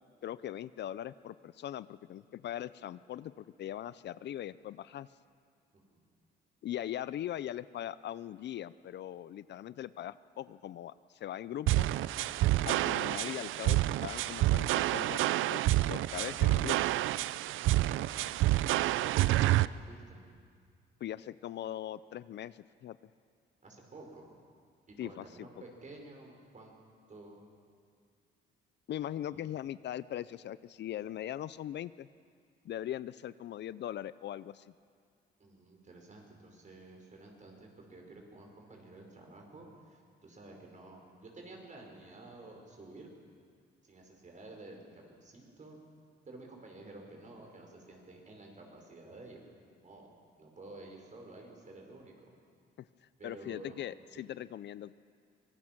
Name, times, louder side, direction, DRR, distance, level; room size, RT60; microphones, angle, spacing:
voice 1, 0.2-5.1 6.6-11.9 12.6-15.6 15.9-16.8 21.0-23.0 25.0-25.5 28.9-32.1 32.6-34.7 52.8-52.9 53.2-54.9, left 11 dB, 60° left, 17 dB, 0.5 m, -40 dB
sound 1, 11.7-19.7, right 16 dB, 80° right, 0.4 m, -28 dB
voice 2, 18.9-20.2 23.6-24.4 24.9-26.7 27.1-27.5 29.3-29.4 35.4-43.1 43.8-45.8 46.2-49.4 49.8-50.1 50.4-52.3 53.2-53.8 54.2-54.3, right 2 dB, 40° right, 1 dB, 5.3 m, -51 dB
24.5 x 19.0 x 6.1 m, 2.2 s
cardioid pair, 90°, 20 cm